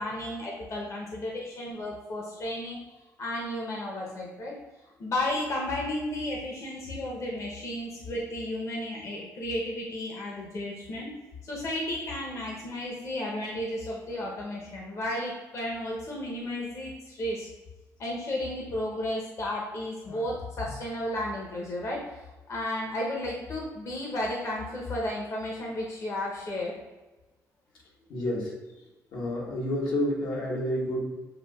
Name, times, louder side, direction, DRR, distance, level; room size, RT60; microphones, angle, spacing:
voice 1, 0.0-2.8 3.2-4.6 5.0-11.1 11.4-17.5 18.0-22.0 22.5-26.7, left 1 dB, 45° left, -2 dB, 0.8 m, -33 dB
voice 2, 28.1-28.5 29.1-31.0, left 1 dB, 80° left, -3 dB, 1.2 m, -29 dB
6.8 x 2.6 x 2.3 m, 1.1 s
cardioid pair, 125°, 7 cm